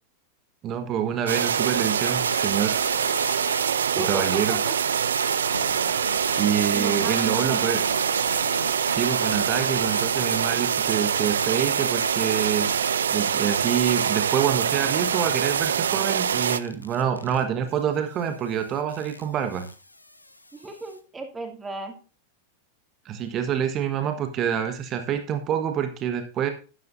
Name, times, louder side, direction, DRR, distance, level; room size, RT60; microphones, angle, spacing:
voice 1, 0.6-2.8 4.0-4.6 6.3-7.8 8.9-19.7 23.0-26.5, right 8 dB, 30° right, 7 dB, 1.3 m, -27 dB
sound 1, 1.3-16.6, right 8 dB, 65° right, 0.5 m, -24 dB
sound 2, 1.7-3.8 4.1-10.5 10.8-13.1 13.5-21.0, left 2 dB, 85° left, 1.1 m, -38 dB
voice 2, 4.0-4.8 6.7-7.6 20.5-21.9, right 3 dB, 15° right, 3 dB, 2.5 m, -34 dB
13.0 x 10.5 x 2.6 m, 0.35 s
figure-of-eight pair, 90°, 0 cm